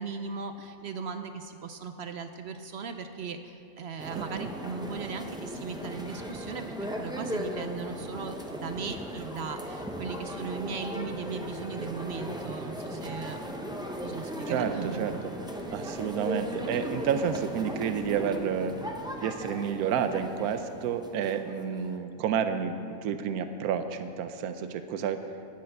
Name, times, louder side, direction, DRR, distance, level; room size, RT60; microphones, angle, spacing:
voice 1, 0.0-13.4 14.0-15.2, right 5 dB, 60° right, 8 dB, 0.7 m, -38 dB
sound 1, 4.0-22.0, equal, 5° right, 0.6 m, -37 dB
voice 2, 4.2-4.5 14.5-15.3 15.7-18.8 19.2-25.4, right 7 dB, 85° right, 9 dB, 1.1 m, -30 dB
10.5 x 10.0 x 6.5 m, 2.7 s
omnidirectional pair, 1.6 m